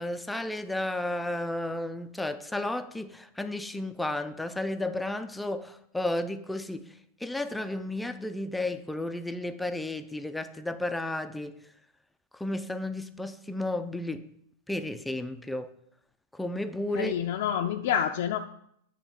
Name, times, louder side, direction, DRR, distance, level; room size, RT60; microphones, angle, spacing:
voice 1, 0.0-6.9 7.2-11.5 12.3-14.2 14.7-15.7 16.3-17.1, left 1 dB, 5° left, 0.4 m, -33 dB
voice 2, 17.0-18.4, left 9 dB, 65° left, 0.4 m, -28 dB
8.5 x 3.3 x 5.8 m
hypercardioid pair, 130°, 0 cm